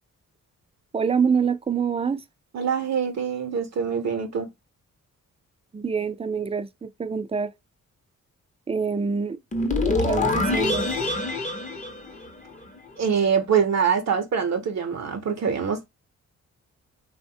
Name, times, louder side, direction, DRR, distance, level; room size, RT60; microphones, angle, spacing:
voice 1, 0.9-2.2 5.7-7.5 8.7-9.4 10.0-10.9, right 6 dB, 20° right, 0.4 m, -25 dB
voice 2, 2.5-4.5 13.0-15.8, right 6 dB, 55° right, 0.7 m, -24 dB
sound 1, 9.5-12.8, left 2 dB, 25° left, 0.7 m, -25 dB
3.0 x 2.1 x 2.6 m
cardioid pair, 65°, 32 cm